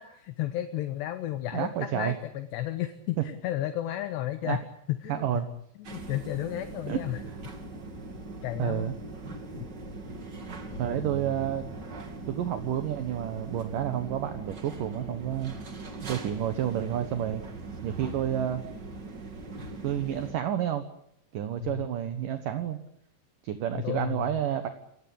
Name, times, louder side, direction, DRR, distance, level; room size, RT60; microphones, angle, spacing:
voice 1, 0.0-4.6 4.9-5.4 5.9-7.2 8.4-9.0 9.6-9.7 21.6-21.8 23.7-24.4, left 13 dB, 70° left, 9 dB, 3.1 m, -33 dB
voice 2, 1.5-2.1 4.4-4.6 5.1-5.5 6.9-7.0 8.6-8.9 10.8-11.6 12.3-15.5 16.0-17.4 17.8-18.6 19.8-20.8 21.3-22.8 23.4-24.7, right 10 dB, 65° right, 9 dB, 2.4 m, -30 dB
sound 1, 5.8-20.3, right 3 dB, 30° right, 2.2 m, -41 dB
sound 2, 10.7-12.5 14.8-15.7, right 1 dB, 40° left, 4.9 m, -44 dB
28.5 x 17.0 x 8.7 m, 0.76 s
omnidirectional pair, 5.4 m